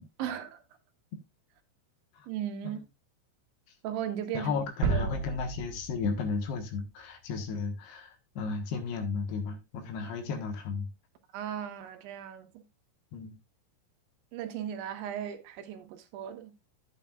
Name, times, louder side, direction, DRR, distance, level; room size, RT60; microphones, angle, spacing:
voice 1, 0.2-0.6 2.3-2.8 3.8-4.5 4.9-5.1 11.3-12.6 14.3-16.5, right 10 dB, 80° right, 3.5 m, -36 dB
voice 2, 4.3-10.9 13.1-13.3, left 5 dB, 70° left, 3.1 m, -34 dB
sound 1, 4.8-6.8 7.1-7.3, right 4 dB, 60° right, 2.8 m, -33 dB
11.5 x 8.4 x 2.4 m
omnidirectional pair, 5.3 m